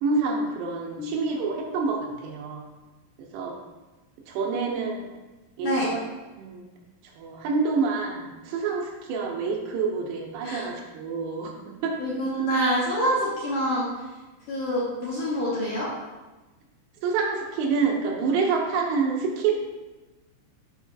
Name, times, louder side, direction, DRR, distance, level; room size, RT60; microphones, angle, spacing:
voice 1, 0.0-2.6 3.3-3.6 4.3-5.0 5.6-6.0 6.4-6.6 7.2-11.5 11.8-12.0 17.0-19.5, right 4 dB, 85° right, -1 dB, 2.7 m, -27 dB
voice 2, 1.0-1.7 5.6-5.9 10.4-10.7 12.0-13.9 14.5-15.9, equal, 70° left, -8 dB, 1.9 m, -26 dB
7.1 x 6.2 x 2.4 m, 1.2 s
omnidirectional pair, 4.9 m